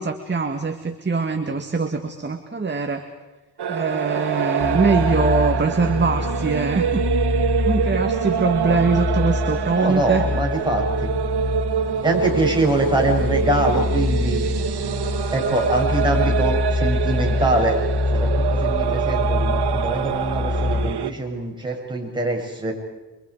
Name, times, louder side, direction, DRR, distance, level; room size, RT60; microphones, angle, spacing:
voice 1, 0.0-3.1 3.7-7.0 7.6-10.2, right 4 dB, 30° right, 5 dB, 2.0 m, -22 dB
sound 1, 3.6-21.1, right 8 dB, 80° right, 1.4 m, -26 dB
sound 2, 4.6-20.9, left 3 dB, 55° left, 1.9 m, -25 dB
voice 2, 9.8-11.1 12.0-14.4 15.3-17.8 18.1-22.7, right 1 dB, 10° right, -1 dB, 7.7 m, -23 dB
29.0 x 26.0 x 5.0 m, 1.1 s
wide cardioid pair, 105°, 39 cm